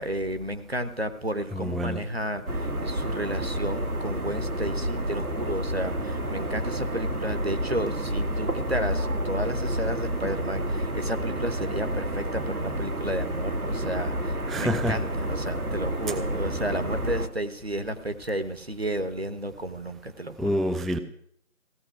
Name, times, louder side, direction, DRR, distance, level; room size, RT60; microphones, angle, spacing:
voice 1, 0.0-20.6, right 1 dB, 45° right, 1.0 m, -32 dB
voice 2, 1.5-2.0 14.5-15.0 16.1-16.2 20.4-21.0, equal, ahead, 0.4 m, -27 dB
sound 1, 2.5-17.3, right 1 dB, 85° right, 1.7 m, -30 dB
16.0 x 5.7 x 10.0 m
figure-of-eight pair, 180°, 43 cm